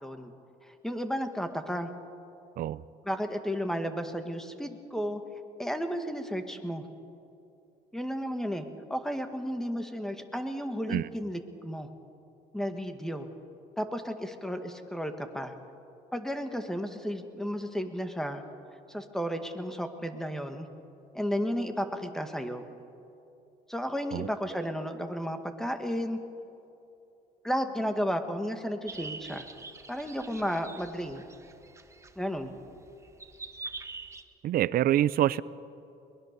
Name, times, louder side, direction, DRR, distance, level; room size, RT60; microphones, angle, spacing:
voice 1, 0.0-0.3 0.7-1.9 3.1-5.2 5.6-6.8 7.9-8.7 8.9-11.9 12.5-13.3 13.8-15.5 16.1-18.4 18.9-20.7 21.1-22.6 23.7-26.2 27.4-29.5 29.9-31.2 32.2-32.5, equal, 5° left, 7 dB, 1.9 m, -33 dB
sound 1, 28.9-34.2, right 3 dB, 15° right, 1.4 m, -45 dB
voice 2, 34.4-35.4, right 13 dB, 60° right, 19 dB, 0.6 m, -26 dB
22.0 x 21.5 x 6.8 m, 2.7 s
cardioid pair, 110°, 17 cm